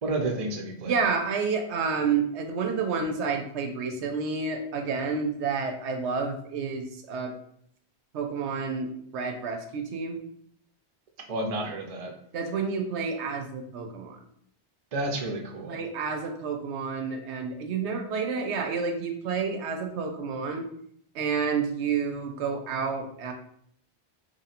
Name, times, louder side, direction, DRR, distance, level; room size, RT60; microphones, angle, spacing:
voice 1, 0.0-0.9 11.3-12.1 14.9-15.8, right 2 dB, 40° right, 2 dB, 0.6 m, -30 dB
voice 2, 0.8-7.3 8.1-10.2 12.3-14.2 15.7-20.7 21.1-23.3, right 5 dB, 80° right, 4 dB, 0.9 m, -29 dB
3.1 x 2.7 x 4.1 m, 0.67 s
omnidirectional pair, 1.1 m